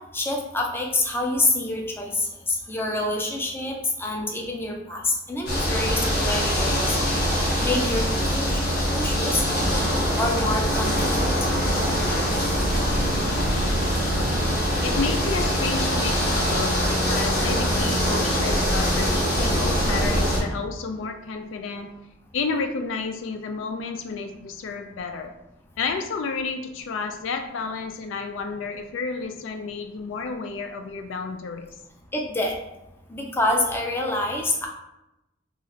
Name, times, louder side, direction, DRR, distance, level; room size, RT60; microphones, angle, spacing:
voice 1, 0.1-7.0 7.6-8.1 8.3-8.6 8.9-9.4 10.2-11.2 32.1-32.5 33.1-34.7, left 2 dB, 10° left, 1 dB, 0.4 m, -26 dB
sound 1, 5.5-20.4, equal, 55° left, 1.1 m, -23 dB
sound 2, 12.7-17.2 17.7-17.8, right 2 dB, 85° right, 0.4 m, -36 dB
voice 2, 14.8-22.0 22.3-25.4 25.8-31.7, left 4 dB, 80° left, 7 dB, 0.4 m, -31 dB
3.0 x 2.4 x 3.9 m, 0.89 s
head